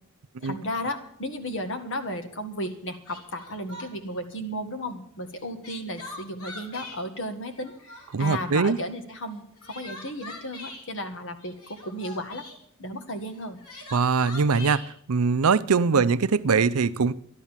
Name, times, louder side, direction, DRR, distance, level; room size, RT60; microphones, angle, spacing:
voice 1, 0.4-12.4 12.8-13.6, left 1 dB, 60° left, 1.9 m, -34 dB
Crying sobbing, 2.6-2.7 3.1-4.1 5.3-7.0 7.5-8.3 9.3-10.9 11.5-12.6 13.3-14.9, left 2 dB, 85° left, 3.3 m, -42 dB
voice 2, 8.1-8.8 13.9-14.8 15.1-17.1, right 5 dB, 70° right, 0.6 m, -22 dB
12.5 x 11.5 x 7.3 m
head